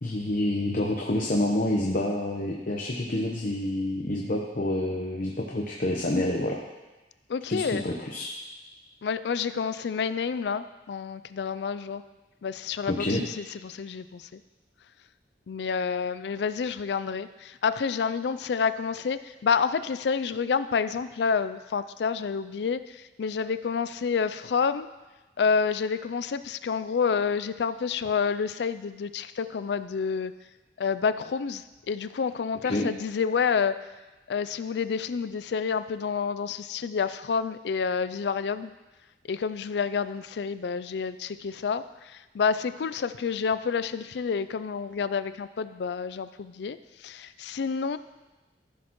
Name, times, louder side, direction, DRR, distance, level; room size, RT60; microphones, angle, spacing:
voice 1, 0.0-6.6 7.5-8.3 12.9-13.2 32.6-32.9, left 1 dB, 50° left, -1 dB, 0.9 m, -28 dB
voice 2, 7.3-7.9 9.0-12.0 12.4-14.4 15.5-24.9 25.4-30.3 30.8-33.7 34.3-38.7 39.3-41.8 42.1-46.8 47.0-48.0, left 6 dB, 70° left, 14 dB, 0.4 m, -29 dB
15.0 x 6.3 x 3.1 m, 1.1 s
head